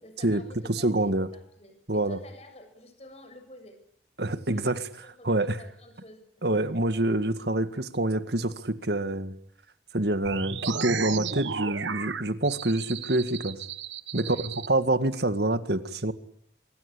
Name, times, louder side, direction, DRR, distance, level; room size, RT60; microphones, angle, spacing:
voice 1, 0.0-3.8 4.4-4.7 5.0-6.6 14.1-14.5, left 1 dB, 35° left, 7 dB, 7.2 m, -49 dB
voice 2, 0.7-1.3 1.9-2.2 4.2-4.8 5.2-5.6 6.4-9.3 9.9-13.6 14.1-16.1, right 1 dB, 65° right, 11 dB, 2.0 m, -26 dB
sound 1, 10.2-14.7, right 6 dB, 90° right, 1.5 m, -34 dB
25.0 x 24.0 x 8.7 m, 0.66 s
head